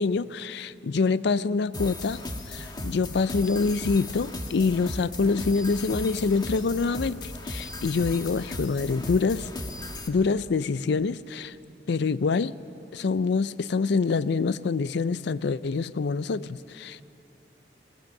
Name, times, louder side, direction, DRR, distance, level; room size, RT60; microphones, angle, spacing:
voice 1, 0.0-2.2 2.5-9.5 10.1-11.6 11.9-12.6 12.9-17.0, left 4 dB, 70° left, 17 dB, 0.4 m, -26 dB
sound 1, 1.7-10.1, left 2 dB, 25° left, 1.5 m, -36 dB
21.0 x 19.0 x 6.6 m, 2.7 s
head